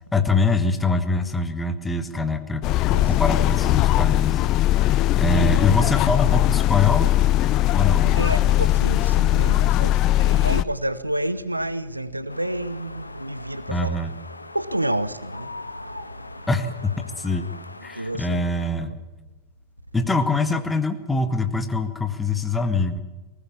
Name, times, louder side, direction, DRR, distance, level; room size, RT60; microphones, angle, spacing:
voice 1, 0.1-2.7 3.1-4.4 4.8-7.2 7.7-8.1 13.7-14.1 16.5-17.5 17.8-18.9 19.9-23.0, left 3 dB, 10° left, 1.8 m, -24 dB
sound 1, 2.6-10.6, left 14 dB, 40° left, 0.7 m, -19 dB
voice 2, 2.9-3.2 8.0-14.0 14.5-15.8 18.0-18.4 18.8-19.0, right 1 dB, 85° right, 0.9 m, -29 dB
sound 2, 12.3-18.7, left 2 dB, 85° left, 1.1 m, -41 dB
20.0 x 19.5 x 7.2 m
figure-of-eight pair, 90°, 0 cm